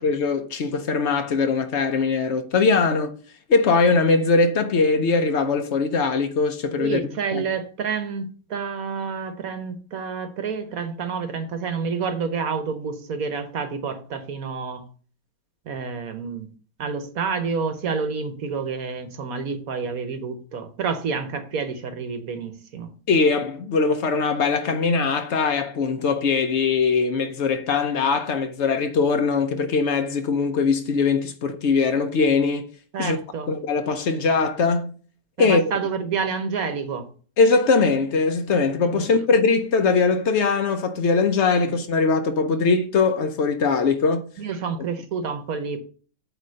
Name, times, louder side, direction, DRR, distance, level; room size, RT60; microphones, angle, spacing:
voice 1, 0.0-3.1 3.5-7.0 7.3-7.4 23.1-32.7 33.0-33.2 33.5-34.9 35.4-35.6 37.4-44.3, left 4 dB, 70° left, 0.6 m, -21 dB
voice 2, 6.8-14.8 15.7-16.5 16.8-22.9 32.9-33.5 35.4-37.1 38.9-39.1 41.6-41.8 44.4-45.8, right 5 dB, 55° right, 1.1 m, -29 dB
8.9 x 3.1 x 6.3 m
omnidirectional pair, 2.1 m